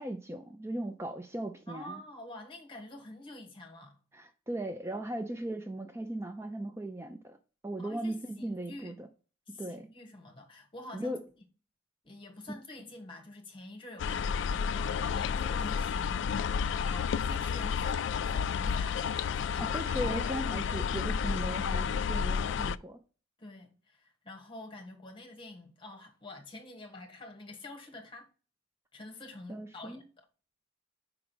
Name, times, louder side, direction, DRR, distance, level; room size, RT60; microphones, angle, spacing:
voice 1, 0.0-2.0 4.1-7.4 7.6-9.1 9.6-9.9 10.9-11.2 19.6-23.0 29.5-30.0, right 1 dB, 15° right, 0.5 m, -37 dB
voice 2, 1.7-4.0 7.8-9.0 9.5-11.2 12.0-19.7 23.4-28.3 28.9-30.3, left 2 dB, 25° left, 1.4 m, -47 dB
sound 1, 14.0-22.8, left 6 dB, 70° left, 0.3 m, -31 dB
4.9 x 4.9 x 6.2 m
head